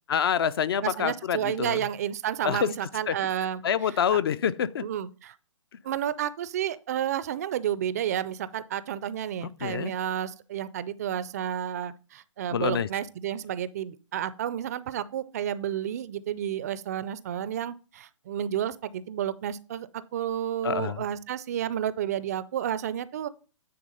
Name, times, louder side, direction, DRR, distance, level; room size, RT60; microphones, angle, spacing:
voice 1, 0.1-1.9 2.4-2.7 3.1-3.3 3.6-4.9 9.6-9.9 12.5-12.9 20.6-21.0, left 8 dB, 50° left, 0.4 m, -27 dB
voice 2, 0.8-3.6 4.1-4.2 4.8-5.3 5.8-23.3, right 10 dB, 30° right, 0.4 m, -31 dB
9.5 x 3.4 x 5.3 m
hypercardioid pair, 140°, 17 cm